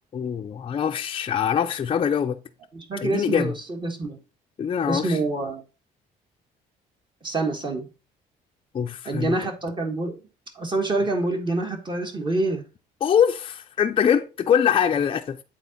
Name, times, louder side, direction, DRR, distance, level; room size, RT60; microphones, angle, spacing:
voice 1, 0.1-2.4 3.0-3.5 4.6-5.2 8.7-9.4 13.0-15.4, left 8 dB, 30° left, 0.5 m, -23 dB
voice 2, 2.7-4.2 4.9-5.6 7.2-7.9 9.0-10.2 10.5-12.6, right 2 dB, 30° right, 1.4 m, -26 dB
8.2 x 3.8 x 4.0 m
cardioid pair, 110°, 17 cm